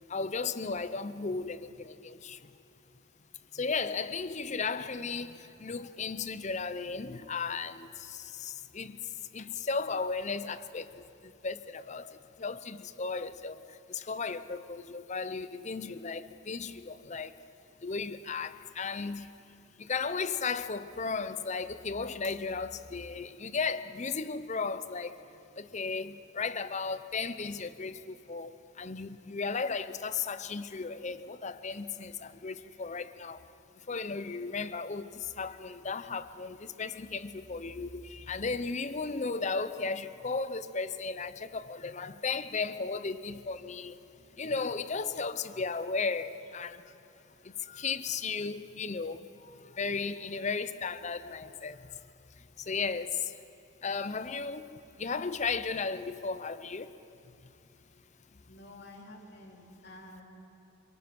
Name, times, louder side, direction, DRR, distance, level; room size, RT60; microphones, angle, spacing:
voice 1, 0.1-2.4 3.5-9.0 9.3-10.9 11.4-13.6 13.9-17.3 17.8-19.3 19.8-25.2 25.6-33.4 33.9-43.9 44.4-46.8 47.7-49.2 49.8-51.8 52.7-53.2 53.8-56.9, left 4 dB, 35° left, 0.6 m, -35 dB
voice 2, 58.5-60.2, left 1 dB, 55° left, 3.4 m, -50 dB
27.0 x 24.0 x 6.1 m
head